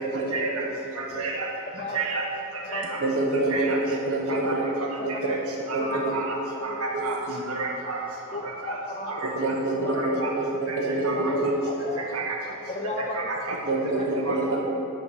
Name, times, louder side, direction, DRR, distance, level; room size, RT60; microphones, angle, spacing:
voice 1, 0.3-0.6 1.0-1.5 1.9-2.2 2.7-2.9 3.5-3.8 4.3-4.6 5.3-5.4 5.7-6.4 6.6-7.2 7.5-8.0 8.6-8.7 9.1-9.5 9.9-10.3 10.7-10.8 11.0-11.5 12.1-12.4 13.1-13.5 14.2-14.6, right 3 dB, 85° right, -1 dB, 1.5 m, -30 dB
voice 2, 2.3-3.0 3.6-3.7 4.1-4.5 4.9-5.4 5.8-6.8 7.1-7.4 8.3-9.2 9.8-9.9 11.2-12.1 12.6-13.3 13.7-14.3, left 2 dB, 30° left, 1 dB, 0.6 m, -36 dB
voice 3, 3.0-4.6 5.0-5.1 5.7-6.1 6.9-7.4 9.3-10.0 10.4-11.5 13.7-14.6, right 2 dB, 55° right, -2 dB, 1.2 m, -26 dB
11.0 x 4.6 x 7.3 m, 2.8 s
head